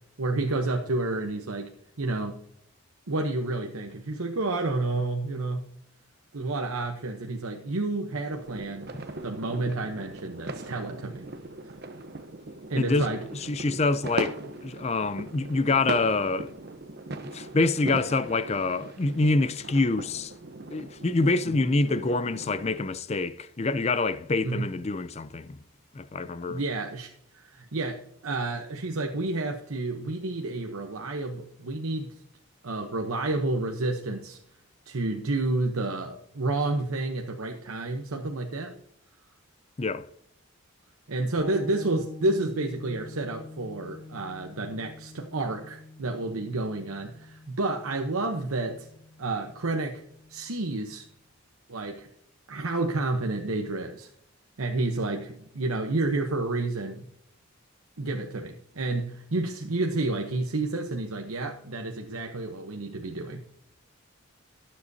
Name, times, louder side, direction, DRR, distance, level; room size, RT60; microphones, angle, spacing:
voice 1, 0.2-1.7 2.0-2.4 3.1-5.6 6.3-8.9 9.2-11.2 12.7-13.2 13.6-13.7 24.4-24.7 26.5-32.1 32.6-34.4 34.9-38.7 41.1-48.9 49.2-50.0 50.3-51.0 51.7-52.1 52.5-54.1 54.6-57.1 58.0-63.4, right 2 dB, 80° right, 0.9 m, -30 dB
sound 1, 8.3-22.8, right 2 dB, 45° right, 0.9 m, -39 dB
voice 2, 12.8-13.1 13.3-16.5 17.2-20.3 20.7-25.6 25.9-26.6 39.8-40.1, left 3 dB, 30° left, 0.4 m, -26 dB
sound 2, 41.4-51.1, left 2 dB, 20° right, 4.6 m, -46 dB
18.5 x 7.6 x 2.8 m
head